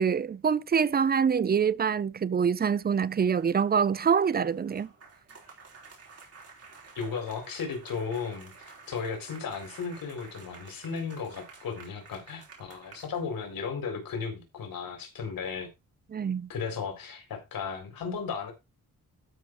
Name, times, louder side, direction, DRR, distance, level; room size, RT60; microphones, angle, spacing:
voice 1, 0.0-4.9 16.1-16.5, right 6 dB, 30° right, 0.5 m, -25 dB
sound 1, 2.7-13.6, right 4 dB, 45° right, 4.6 m, -52 dB
voice 2, 6.9-8.5 8.9-15.7 16.5-18.5, left 5 dB, 85° left, 4.3 m, -35 dB
12.5 x 6.0 x 4.7 m
wide cardioid pair, 145°, 34 cm